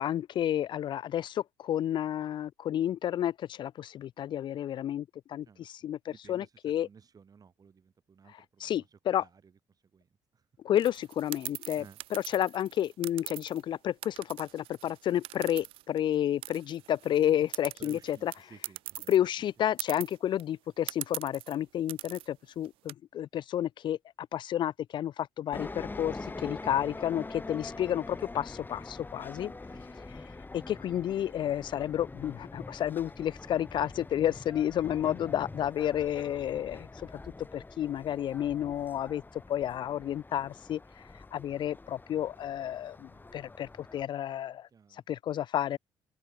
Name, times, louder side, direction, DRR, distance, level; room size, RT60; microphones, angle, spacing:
voice 1, 0.0-6.9 8.6-9.2 10.6-11.8 12.1-18.3 19.1-29.5 30.5-37.1 37.5-40.8 41.3-45.8, left 11 dB, 60° left, 0.5 m, -31 dB
voice 2, 6.1-10.5 11.7-12.0 17.8-19.2 26.6-27.0 29.5-29.9 44.7-45.0, right 6 dB, 40° right, 6.2 m, -56 dB
sound 1, 10.8-13.6 14.0-16.1 16.4-19.2 19.5-19.6 19.8-20.4 20.9-21.5 21.9-22.3 22.6-22.9, right 17 dB, 75° right, 2.3 m, -41 dB
sound 2, 25.5-44.0, left 3 dB, 20° left, 5.8 m, -44 dB
supercardioid pair, 65°, 9 cm